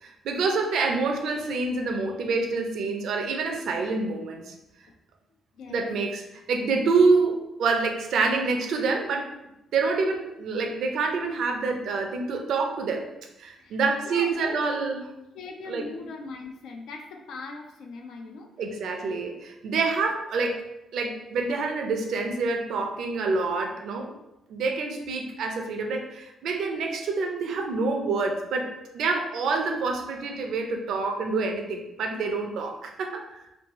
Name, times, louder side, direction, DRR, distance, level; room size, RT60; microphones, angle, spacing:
voice 1, 0.0-4.6 5.7-6.2 6.5-9.3 9.7-13.0 13.4-15.0 15.7-15.8 18.6-20.7 20.9-24.1 24.5-33.4, right 4 dB, 75° right, 3 dB, 0.5 m, -27 dB
voice 2, 5.5-5.9 13.6-13.8 14.0-14.6 15.3-18.5 19.0-19.1 30.2-30.3, left 3 dB, 75° left, 3 dB, 0.4 m, -40 dB
2.6 x 2.6 x 2.9 m, 0.90 s
cardioid pair, 90°, 0 cm